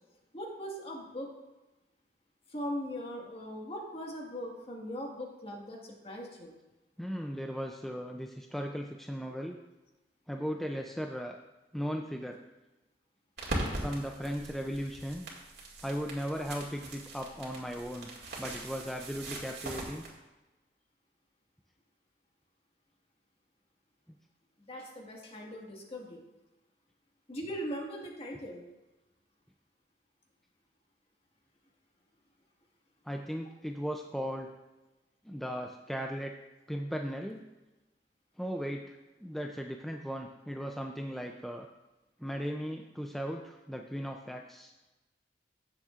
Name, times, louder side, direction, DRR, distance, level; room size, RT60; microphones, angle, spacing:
voice 1, 0.3-1.3 2.5-6.5 24.6-26.2 27.3-28.6, equal, 35° left, 0 dB, 1.6 m, -40 dB
voice 2, 7.0-9.6 10.3-11.4 11.7-12.4 13.7-15.3 15.8-18.1 18.4-20.0 33.0-34.5 35.2-36.3 36.7-37.4 38.4-41.7 42.2-44.7, equal, ahead, 2 dB, 0.4 m, -37 dB
sound 1, 13.4-20.1, right 1 dB, 70° right, 2.1 m, -40 dB
15.5 x 7.3 x 2.4 m, 1.1 s
head